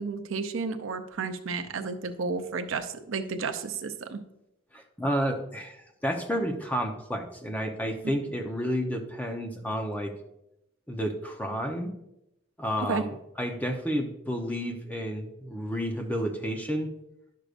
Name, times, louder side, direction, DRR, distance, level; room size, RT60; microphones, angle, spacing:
voice 1, 0.0-4.2 12.8-13.1, right 4 dB, 75° right, 6 dB, 0.6 m, -32 dB
voice 2, 4.7-10.1 10.9-11.9 12.6-16.9, equal, 10° left, 3 dB, 0.8 m, -31 dB
10.5 x 6.5 x 2.5 m, 0.83 s
head